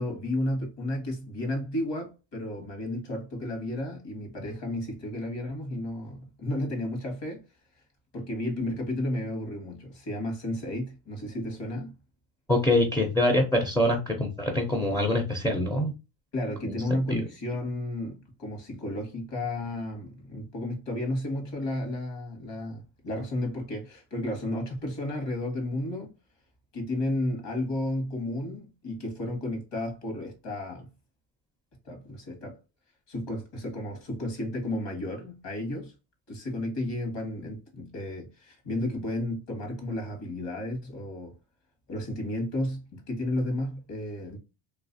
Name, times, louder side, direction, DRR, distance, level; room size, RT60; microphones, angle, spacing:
voice 1, 0.0-7.4 8.1-11.9 16.3-26.1 26.7-30.9 31.9-32.6 33.1-35.9 36.3-41.3 41.9-44.4, left 1 dB, 60° left, 1.7 m, -32 dB
voice 2, 12.5-15.9 16.7-16.8 17.1-17.2, left 1 dB, 5° left, 0.4 m, -24 dB
3.1 x 3.0 x 2.6 m
cardioid pair, 145°, 48 cm